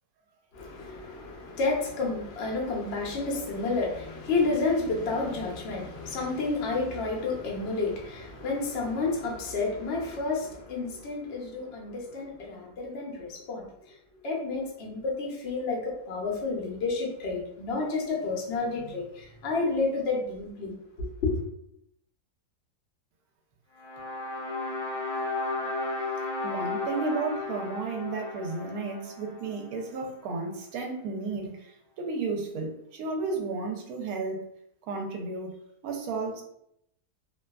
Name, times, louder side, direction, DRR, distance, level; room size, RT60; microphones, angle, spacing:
voice 1, 0.5-14.0 14.2-21.4, left 3 dB, 60° left, -1 dB, 0.6 m, -30 dB
sound 1, 23.8-30.0, left 2 dB, 85° left, 1.2 m, -34 dB
voice 2, 26.4-34.4 34.9-35.5 35.8-36.4, right 3 dB, 70° right, 1 dB, 1.0 m, -33 dB
2.6 x 2.3 x 2.2 m, 0.74 s
omnidirectional pair, 1.7 m